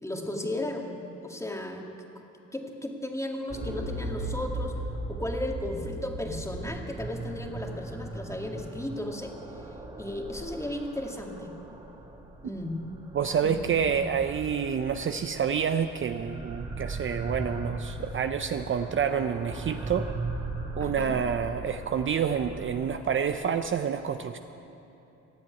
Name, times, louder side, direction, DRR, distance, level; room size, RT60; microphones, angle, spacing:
voice 1, 0.0-0.9 1.2-1.9 2.5-4.7 5.1-9.3 10.0-11.5 12.4-12.8 13.4-13.7 20.8-21.2, left 1 dB, 10° left, 2 dB, 1.9 m, -35 dB
sound 1, 3.5-23.4, right 2 dB, 20° right, 2.1 m, -38 dB
voice 2, 13.1-20.1 20.8-24.4, right 7 dB, 40° right, 8 dB, 0.6 m, -28 dB
17.0 x 7.5 x 9.5 m, 3.0 s
cardioid pair, 90°, 30 cm